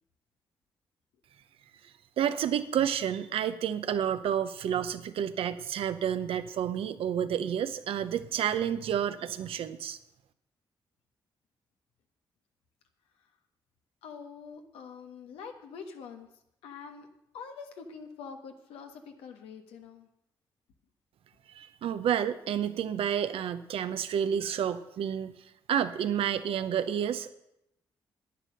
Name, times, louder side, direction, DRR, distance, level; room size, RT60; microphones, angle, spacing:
voice 1, 2.2-10.0 21.5-25.3 25.7-27.3, right 9 dB, 75° right, 11 dB, 0.8 m, -30 dB
voice 2, 14.0-16.3 16.6-17.1 17.3-20.1, left 6 dB, 90° left, 5 dB, 1.3 m, -45 dB
10.5 x 9.6 x 6.5 m, 0.83 s
supercardioid pair, 55°, 10 cm